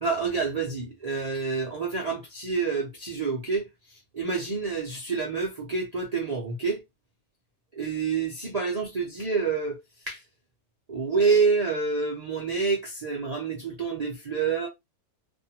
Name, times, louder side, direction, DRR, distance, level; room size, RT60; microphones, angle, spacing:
voice 1, 0.0-6.8 7.7-9.8 10.0-10.2 10.9-14.7, right 4 dB, 80° right, 0.3 m, -28 dB
2.6 x 2.3 x 2.7 m
omnidirectional pair, 1.6 m